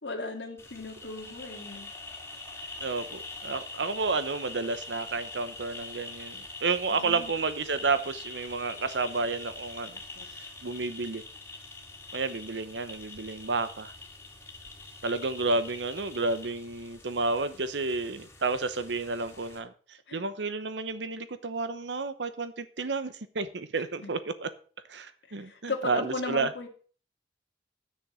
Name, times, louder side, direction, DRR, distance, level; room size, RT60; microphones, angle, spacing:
voice 1, 0.0-1.9 6.9-7.3 10.2-10.3 20.1-20.2 24.0-24.1 25.3-26.7, left 3 dB, 85° left, 2.1 m, -37 dB
sound 1, 0.6-19.6, left 3 dB, 15° left, 2.2 m, -44 dB
voice 2, 2.8-10.0 10.3-11.2 12.1-13.9 15.0-19.7 20.1-24.5 24.9-26.5, right 3 dB, 80° right, 0.9 m, -31 dB
10.0 x 6.5 x 6.2 m
head